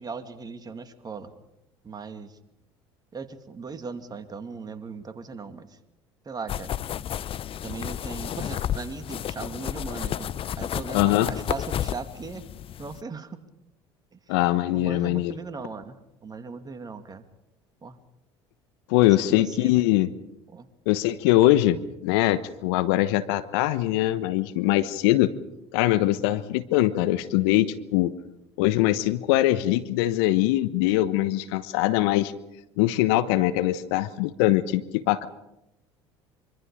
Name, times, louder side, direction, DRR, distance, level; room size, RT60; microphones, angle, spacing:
voice 1, 0.0-1.3 1.8-2.4 3.1-5.8 6.2-6.7 7.6-12.4 12.8-13.4 14.7-16.0 16.2-17.2 17.8-18.0 19.2-19.9 20.5-20.7, right 4 dB, 30° right, 8 dB, 2.5 m, -38 dB
sound 1, 6.5-13.0, left 10 dB, 40° left, 0.7 m, -32 dB
voice 2, 10.9-11.3 14.3-15.3 18.9-20.1 20.9-25.3 25.7-28.1 28.6-32.3 32.8-35.3, left 15 dB, 70° left, 13 dB, 1.1 m, -22 dB
25.0 x 25.0 x 5.1 m, 0.87 s
hypercardioid pair, 65°, 14 cm